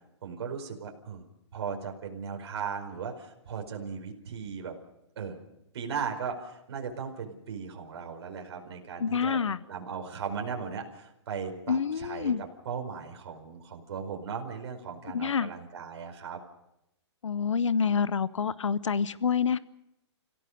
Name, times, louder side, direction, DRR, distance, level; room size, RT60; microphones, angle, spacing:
voice 1, 0.2-1.2 1.5-4.7 5.2-5.4 5.7-9.4 9.7-12.3 12.6-16.4, right 6 dB, 60° right, 2 dB, 5.0 m, -37 dB
voice 2, 9.0-9.6 11.7-12.4 15.1-15.5 17.2-19.6, left 6 dB, 90° left, 17 dB, 0.9 m, -27 dB
30.0 x 16.5 x 6.6 m, 0.84 s
hypercardioid pair, 150°, 15 cm